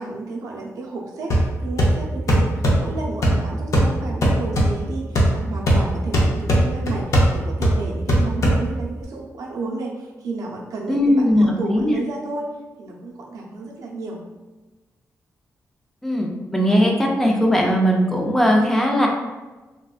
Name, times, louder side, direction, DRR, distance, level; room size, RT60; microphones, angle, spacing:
voice 1, 0.0-12.5 12.8-14.2, right 3 dB, 80° right, -1 dB, 0.6 m, -32 dB
sound 1, 1.3-9.0, right 1 dB, 65° left, 0.6 m, -20 dB
voice 2, 10.9-12.0 16.0-19.1, equal, 5° left, 0 dB, 0.5 m, -19 dB
3.5 x 2.2 x 2.4 m, 1.2 s
cardioid pair, 95°, 6 cm